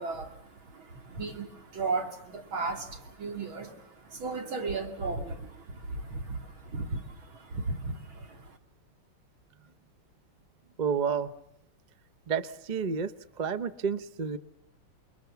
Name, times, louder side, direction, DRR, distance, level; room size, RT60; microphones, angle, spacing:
voice 1, 0.0-8.6, right 3 dB, 70° right, 4 dB, 3.5 m, -36 dB
voice 2, 10.8-11.3 12.3-13.1 13.4-14.4, right 6 dB, 40° right, 13 dB, 0.6 m, -30 dB
29.5 x 22.0 x 7.0 m, 0.76 s
omnidirectional pair, 2.3 m